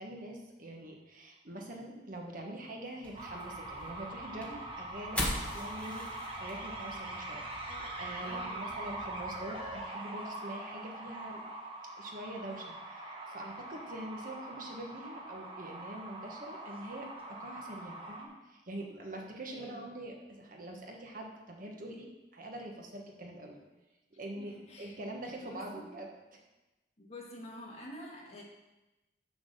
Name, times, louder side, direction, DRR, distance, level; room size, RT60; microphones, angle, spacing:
voice 1, 0.0-6.1 6.4-11.4 11.9-23.6 24.2-26.1, right 1 dB, 50° right, 1 dB, 1.3 m, -44 dB
sound 1, 3.0-9.8, left 1 dB, 10° left, 1.5 m, -42 dB
sound 2, 3.1-18.2, right 2 dB, 30° right, 1.3 m, -43 dB
voice 2, 8.2-8.8 19.5-19.9 24.4-25.0 25.4-25.9 27.0-28.4, left 1 dB, 40° left, -3 dB, 1.8 m, -48 dB
6.4 x 5.8 x 6.6 m, 1.1 s
head